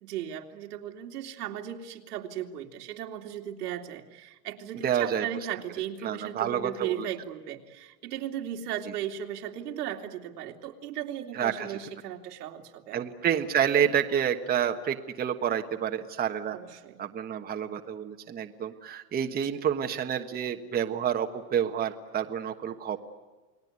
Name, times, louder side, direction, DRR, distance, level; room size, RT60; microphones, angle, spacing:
voice 1, 0.0-13.1 16.5-17.0, right 10 dB, 80° right, 3 dB, 2.9 m, -36 dB
voice 2, 4.8-5.3 6.0-7.1 11.3-11.7 12.9-16.6 17.0-23.0, right 9 dB, 20° right, 5 dB, 1.4 m, -29 dB
29.5 x 19.5 x 9.6 m, 1.2 s
supercardioid pair, 140°, 46 cm